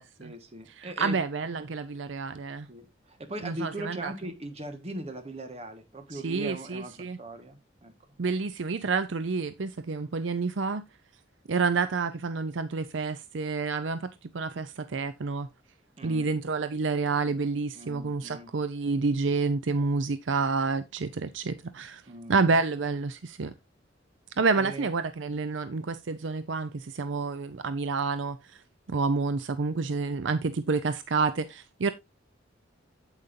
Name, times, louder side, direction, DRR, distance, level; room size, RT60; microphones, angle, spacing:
voice 1, 0.0-1.2 2.7-7.9 16.0-16.4 17.7-18.5 22.1-22.4 24.5-24.9, right 1 dB, 35° right, 1.5 m, -40 dB
voice 2, 0.8-2.7 3.4-4.1 6.1-7.2 8.2-10.8 11.5-15.5 16.0-22.0 22.3-23.5 24.4-28.6 28.9-31.9, right 4 dB, 70° right, 0.6 m, -29 dB
8.8 x 8.1 x 2.6 m
head